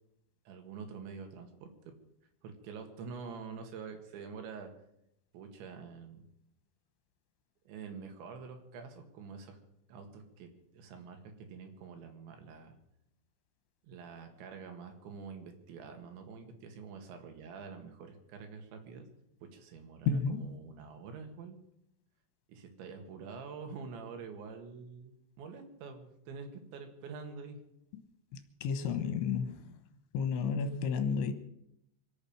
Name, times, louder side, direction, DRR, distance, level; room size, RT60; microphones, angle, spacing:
voice 1, 0.5-2.0 2.4-4.7 5.3-6.3 7.7-9.6 9.9-12.8 13.8-19.1 19.4-21.6 22.5-27.6, right 5 dB, 75° right, 5 dB, 4.1 m, -46 dB
voice 2, 20.1-20.6 28.6-29.6 30.1-31.3, left 6 dB, 80° left, 9 dB, 3.4 m, -31 dB
25.0 x 8.8 x 6.3 m, 0.78 s
omnidirectional pair, 5.4 m